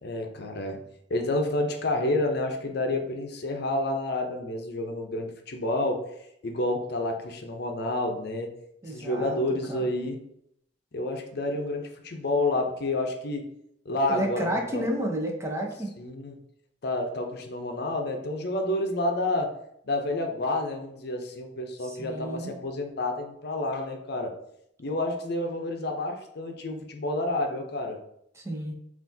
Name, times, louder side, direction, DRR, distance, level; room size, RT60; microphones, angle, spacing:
voice 1, 0.0-6.1 6.4-8.5 8.9-10.2 10.9-13.5 13.8-14.8 16.0-16.4 16.8-19.5 19.8-24.3 24.8-28.0, left 2 dB, 60° left, 3 dB, 0.6 m, -29 dB
voice 2, 8.8-9.4 9.7-9.9 14.1-15.9 21.8-22.5 28.4-28.7, right 1 dB, 15° right, 1 dB, 0.6 m, -31 dB
5.8 x 2.5 x 2.7 m, 0.75 s
head